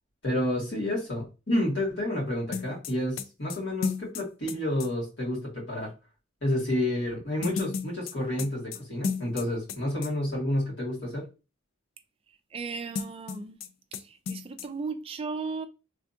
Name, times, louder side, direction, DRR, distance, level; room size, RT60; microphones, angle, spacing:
voice 1, 0.2-5.9 6.4-11.3, left 1 dB, 60° left, 2.3 m, -30 dB
sound 1, 2.5-4.9 7.4-9.8 10.0-10.1 12.9-13.7 13.9-14.0 14.3-14.7, left 5 dB, 85° left, 0.4 m, -33 dB
voice 2, 12.5-13.6 14.3-15.7, right 4 dB, 30° right, 0.3 m, -35 dB
3.5 x 3.4 x 2.7 m
head